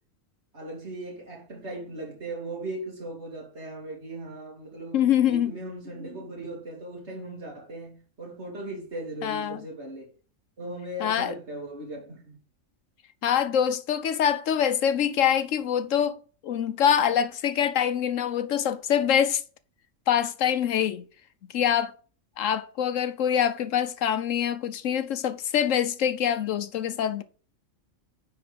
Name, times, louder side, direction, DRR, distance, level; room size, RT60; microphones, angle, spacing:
voice 1, 0.5-10.1 10.6-12.4, right 1 dB, 55° right, 2.8 m, -38 dB
voice 2, 4.9-5.5 9.2-9.6 11.0-11.4 13.2-16.2 16.4-19.4 20.1-21.0 21.5-21.9 22.4-27.2, left 9 dB, 75° left, 1.1 m, -24 dB
9.7 x 3.9 x 5.0 m
omnidirectional pair, 1.4 m